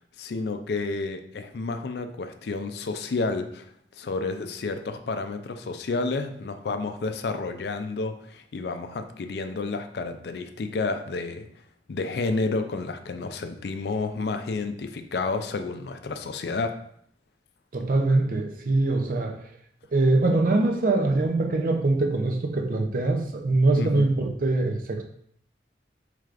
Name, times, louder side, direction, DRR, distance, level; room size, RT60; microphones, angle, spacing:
voice 1, 0.2-3.7 3.9-11.5 11.9-16.7 23.8-24.1, left 3 dB, 70° left, 0.4 m, -30 dB
voice 2, 17.7-19.5 19.9-25.0, right 2 dB, 50° right, 0.5 m, -23 dB
4.7 x 3.2 x 2.4 m
head